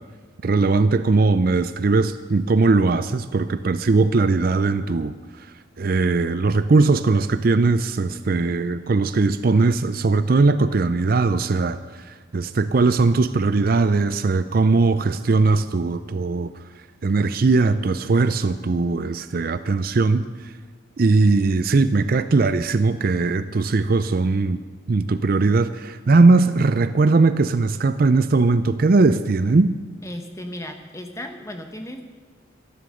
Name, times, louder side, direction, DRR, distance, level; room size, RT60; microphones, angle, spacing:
voice 1, 0.4-5.1 5.8-11.8 12.1-16.5 17.0-20.3 21.0-24.6 24.9-29.7, right 3 dB, 45° right, 12 dB, 0.4 m, -19 dB
voice 2, 30.0-32.0, left 1 dB, 15° left, 5 dB, 1.1 m, -35 dB
13.0 x 11.5 x 6.5 m, 1.5 s
head